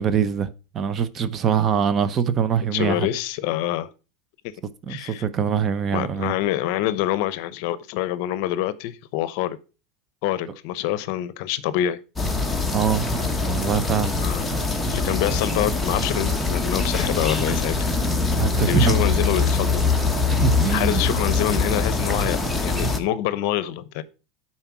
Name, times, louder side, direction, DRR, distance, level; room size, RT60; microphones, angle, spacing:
voice 1, 0.0-3.1 4.9-6.3 12.7-13.0 13.4-14.2 18.4-19.2 20.2-21.0, right 7 dB, 30° right, 0.8 m, -23 dB
voice 2, 2.7-3.9 4.9-5.2 5.9-9.6 10.2-12.0 14.1-14.5 14.9-17.9 18.6-19.9 20.7-24.0, left 13 dB, 60° left, 0.7 m, -26 dB
sound 1, 12.2-23.0, left 3 dB, 5° left, 1.2 m, -23 dB
9.8 x 4.3 x 5.9 m
supercardioid pair, 140°, 0 cm